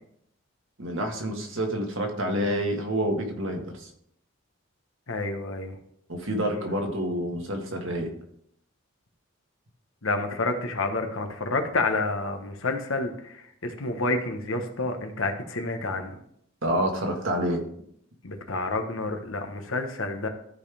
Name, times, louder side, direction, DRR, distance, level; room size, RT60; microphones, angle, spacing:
voice 1, 0.8-3.9 6.1-8.1 16.6-17.6, equal, 70° right, 2 dB, 1.6 m, -28 dB
voice 2, 5.1-5.8 10.0-13.3 13.6-16.1 18.2-20.3, left 2 dB, 75° left, 5 dB, 1.2 m, -29 dB
13.0 x 5.3 x 3.4 m, 0.71 s
head